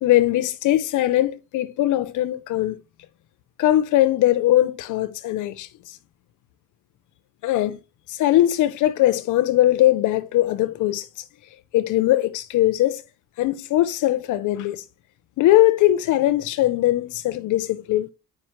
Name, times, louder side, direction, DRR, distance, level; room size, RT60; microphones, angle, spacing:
voice 1, 0.0-2.8 3.6-6.0 7.4-7.8 8.1-11.1 11.7-13.0 13.4-14.8 15.4-18.1, left 14 dB, 80° left, 0.5 m, -20 dB
7.7 x 5.0 x 3.0 m
cardioid pair, 90°, 30 cm